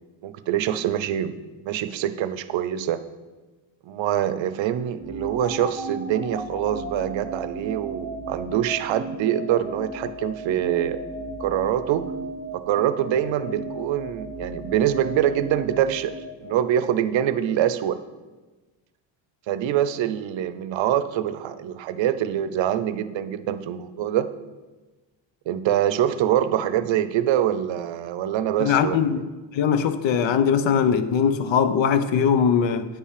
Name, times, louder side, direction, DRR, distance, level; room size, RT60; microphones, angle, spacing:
voice 1, 0.2-1.4 1.6-3.0 3.8-11.0 11.4-12.1 12.7-18.0 19.5-24.3 25.5-29.0, right 11 dB, 75° right, 0.6 m, -24 dB
sound 1, 5.0-17.1, right 1 dB, 20° left, 2.4 m, -35 dB
voice 2, 28.6-29.2 29.5-32.9, left 7 dB, 70° left, 0.7 m, -21 dB
9.3 x 5.6 x 4.9 m
cardioid pair, 135°, 46 cm